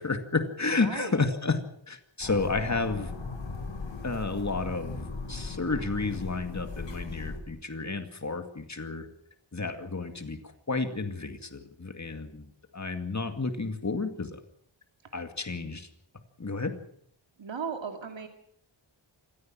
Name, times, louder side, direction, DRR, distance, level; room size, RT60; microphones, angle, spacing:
voice 1, 0.0-1.6 1.9-3.1 4.0-9.1 9.5-12.4 12.7-14.4 15.1-15.9 16.4-16.7, left 3 dB, 35° left, 7 dB, 2.3 m, -31 dB
voice 2, 0.8-1.3 15.0-15.2 17.4-18.3, right 6 dB, 70° right, 5 dB, 2.5 m, -37 dB
sound 1, 2.2-7.4, left 3 dB, 70° left, 6.4 m, -38 dB
27.0 x 14.5 x 7.6 m, 0.67 s
wide cardioid pair, 100°, 47 cm